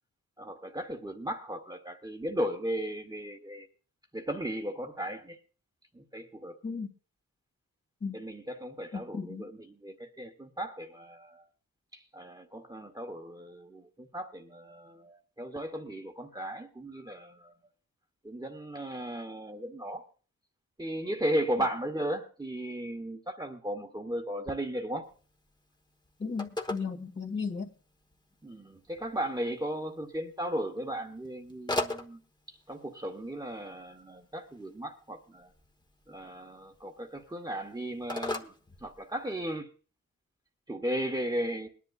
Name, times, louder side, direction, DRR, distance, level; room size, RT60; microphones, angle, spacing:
voice 1, 0.4-3.7 4.1-5.4 5.9-6.6 8.1-11.4 11.9-17.5 18.2-20.1 20.8-25.1 28.4-32.2 32.5-35.5 36.1-38.5 38.8-39.7 40.7-41.7, right 1 dB, 15° right, 3 dB, 1.1 m, -36 dB
voice 2, 8.9-9.4 26.2-27.7, left 5 dB, 40° left, 1 dB, 2.1 m, -35 dB
Telephone, 25.0-39.5, left 1 dB, 15° left, 1.1 m, -42 dB
22.0 x 10.5 x 2.3 m, 0.38 s
wide cardioid pair, 125°, 30 cm